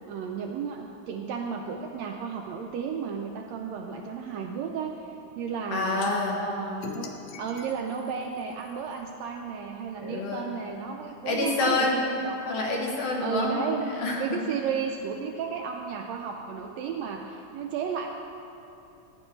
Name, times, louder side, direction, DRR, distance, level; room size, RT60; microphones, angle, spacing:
voice 1, 0.1-6.0 6.4-7.1 7.4-12.4 12.6-12.7 13.2-13.9 14.2-18.1, right 6 dB, 80° right, 2 dB, 1.6 m, -33 dB
voice 2, 5.7-6.4 10.0-10.4 11.3-12.0 12.5-14.4, left 2 dB, 65° left, -1 dB, 1.7 m, -27 dB
sound 1, 6.0-6.1 6.8-9.0, left 6 dB, 80° left, 2.1 m, -43 dB
15.0 x 9.8 x 3.1 m, 2.8 s
omnidirectional pair, 3.5 m